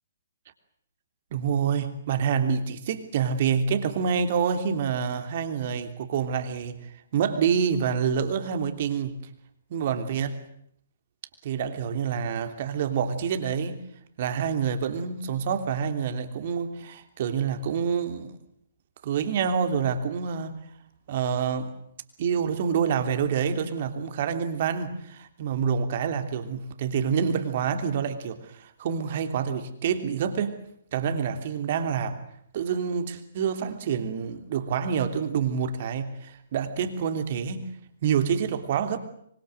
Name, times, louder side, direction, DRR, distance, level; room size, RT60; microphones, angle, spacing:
voice 1, 1.3-9.2 9.7-10.4 11.4-13.8 14.2-18.3 19.0-20.6 21.1-21.8 22.2-30.6 30.9-32.2 32.5-37.7 38.0-39.0, right 7 dB, 45° right, 3.1 m, -27 dB
25.0 x 25.0 x 8.0 m
figure-of-eight pair, 125°, 0 cm